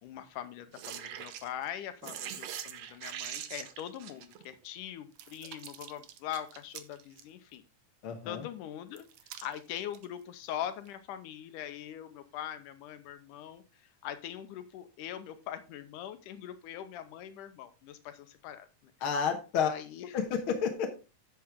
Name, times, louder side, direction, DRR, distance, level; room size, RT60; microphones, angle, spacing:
voice 1, 0.0-7.6 8.3-9.1 9.4-13.6 14.0-18.9 19.6-20.1, left 10 dB, 80° left, 10 dB, 2.3 m, -42 dB
sound 1, 0.7-1.7 2.0-4.7 5.2-7.2 9.0-10.1 10.9-11.0, right 10 dB, 65° right, 1.7 m, -43 dB
voice 2, 8.0-8.4 19.0-19.7 20.1-20.9, left 7 dB, 55° left, 4 dB, 1.7 m, -30 dB
10.5 x 7.6 x 3.6 m, 0.30 s
omnidirectional pair, 3.7 m